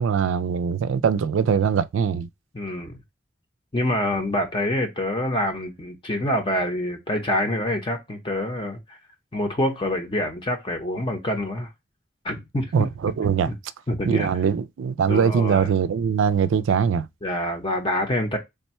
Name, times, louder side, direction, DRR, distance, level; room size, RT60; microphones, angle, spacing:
voice 1, 0.0-2.3 12.7-13.5 14.1-17.1, right 7 dB, 85° right, 0.3 m, -22 dB
voice 2, 2.5-3.0 3.7-9.0 9.3-11.7 12.2-12.7 13.5-13.6 13.9-14.3 15.1-15.7 17.2-18.4, left 1 dB, 25° left, 0.7 m, -26 dB
3.5 x 2.2 x 4.2 m
head